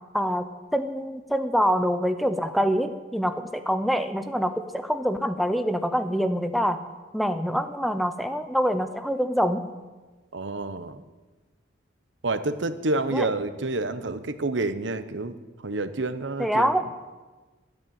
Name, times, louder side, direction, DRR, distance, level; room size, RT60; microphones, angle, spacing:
voice 1, 0.1-6.8 7.1-9.6 13.1-13.3 16.4-16.8, equal, ahead, 9 dB, 0.7 m, -25 dB
voice 2, 10.3-11.0 12.2-15.3 15.6-16.7, right 2 dB, 85° right, 11 dB, 0.9 m, -28 dB
13.5 x 9.7 x 9.1 m, 1.3 s
head